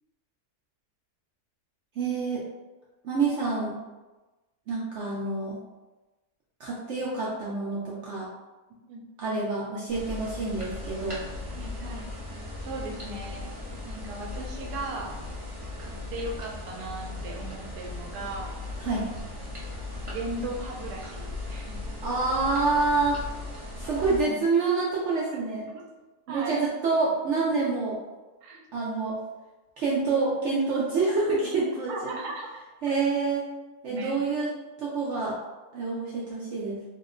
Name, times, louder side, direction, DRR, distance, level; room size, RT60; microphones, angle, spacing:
voice 1, 2.0-2.4 3.0-3.8 4.7-5.6 6.6-8.3 9.2-11.2 18.8-19.1 22.0-23.2 23.8-25.6 26.3-28.0 28.7-29.2 29.8-32.2 32.8-33.4 33.8-34.5 34.8-35.4 35.7-36.8, right 3 dB, 65° right, -5 dB, 0.7 m, -27 dB
sound 1, 9.9-24.2, left 2 dB, 30° right, 0.6 m, -38 dB
voice 2, 11.5-12.2 12.6-13.5 13.8-15.1 15.8-18.5 20.1-21.8 24.2-24.4 25.7-25.8 26.3-26.7 28.4-28.6 31.9-32.6 33.9-34.3, right 2 dB, 85° right, 1 dB, 1.1 m, -37 dB
2.8 x 2.1 x 3.6 m, 1.2 s
omnidirectional pair, 1.7 m